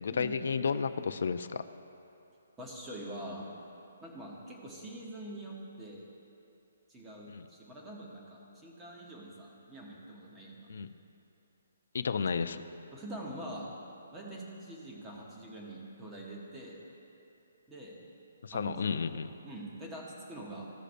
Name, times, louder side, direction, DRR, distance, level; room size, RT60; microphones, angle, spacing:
voice 1, 0.0-1.6 7.3-7.5 10.7-10.9 11.9-12.6 18.4-19.3, left 5 dB, 50° left, 11 dB, 0.4 m, -32 dB
voice 2, 2.6-3.5 4.0-6.0 6.9-10.7 12.2-12.3 12.9-13.7 14.1-16.8 17.7-18.0 18.5-20.7, right 1 dB, 5° right, -3 dB, 0.9 m, -45 dB
15.0 x 6.6 x 2.5 m, 2.8 s
hypercardioid pair, 180°, 0 cm